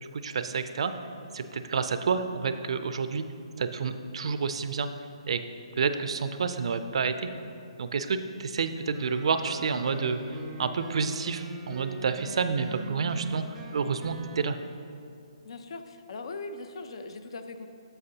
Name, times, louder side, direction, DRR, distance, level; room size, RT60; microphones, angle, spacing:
voice 1, 0.1-0.9 1.3-3.2 3.6-4.9 5.3-5.4 5.8-7.3 7.8-14.6, right 5 dB, 60° right, 10 dB, 0.4 m, -29 dB
sound 1, 8.9-14.4, right 2 dB, 10° right, 0.6 m, -42 dB
voice 2, 15.4-17.7, left 3 dB, 55° left, 8 dB, 0.5 m, -40 dB
7.8 x 7.5 x 2.8 m, 2.5 s
hypercardioid pair, 145°, 3 cm